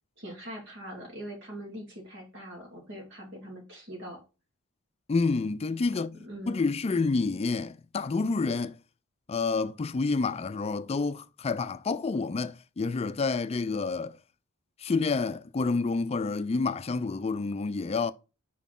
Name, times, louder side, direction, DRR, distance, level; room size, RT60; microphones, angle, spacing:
voice 1, 0.2-4.2 6.2-6.6, equal, 60° right, 2.2 m, -42 dB
voice 2, 5.1-6.2 6.5-8.8 9.3-14.2 14.8-18.1, left 4 dB, 30° left, 0.4 m, -28 dB
6.0 x 4.5 x 3.8 m
head